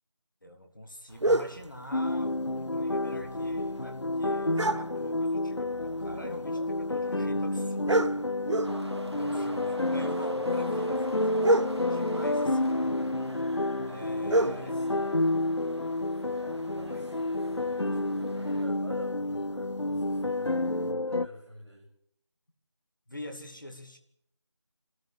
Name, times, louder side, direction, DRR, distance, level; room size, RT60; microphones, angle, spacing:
voice 1, 0.4-8.1 9.0-12.7 13.9-14.7 16.7-17.1 18.0-18.2 23.1-24.0, left 1 dB, 45° left, 5 dB, 2.2 m, -45 dB
sound 1, 1.1-20.9, right 2 dB, 80° right, 1.0 m, -35 dB
sound 2, 1.9-21.3, left 2 dB, 70° left, 1.1 m, -30 dB
sound 3, 8.6-18.6, right 1 dB, 65° right, 2.7 m, -46 dB
voice 2, 9.3-9.6 12.2-13.0 14.4-15.2 16.4-21.8, equal, 5° right, -15 dB, 2.2 m, -50 dB
23.0 x 13.5 x 9.0 m, 0.69 s
figure-of-eight pair, 180°, 15 cm